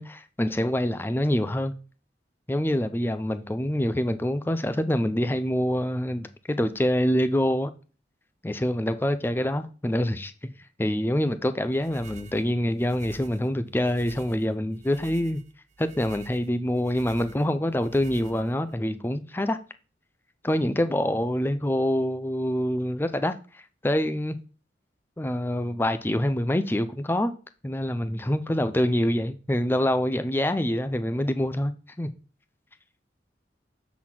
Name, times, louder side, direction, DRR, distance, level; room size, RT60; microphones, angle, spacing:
voice 1, 0.0-1.7 2.5-7.7 8.4-10.5 10.8-15.4 15.8-19.6 20.4-24.4 25.2-27.3 27.6-31.7 32.0-32.1, left 1 dB, 10° left, 0.4 m, -26 dB
sound 1, 11.7-18.8, right 5 dB, 40° right, 0.5 m, -49 dB
7.6 x 4.2 x 5.8 m
head